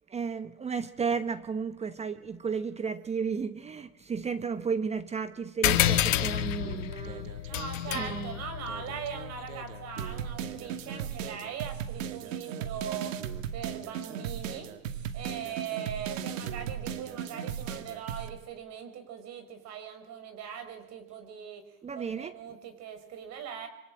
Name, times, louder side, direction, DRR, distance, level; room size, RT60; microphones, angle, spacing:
voice 1, 0.1-7.3 7.9-8.4 21.8-22.4, right 6 dB, 15° right, 1.1 m, -33 dB
sound 1, 5.6-10.6, left 12 dB, 65° left, 2.1 m, -30 dB
sound 2, 5.6-8.2 8.7-18.3, right 8 dB, 70° right, 2.6 m, -37 dB
voice 2, 7.5-13.2 13.5-21.6 21.9-23.7, right 8 dB, 40° right, 5.8 m, -40 dB
26.0 x 25.0 x 8.8 m
hypercardioid pair, 105°, 41 cm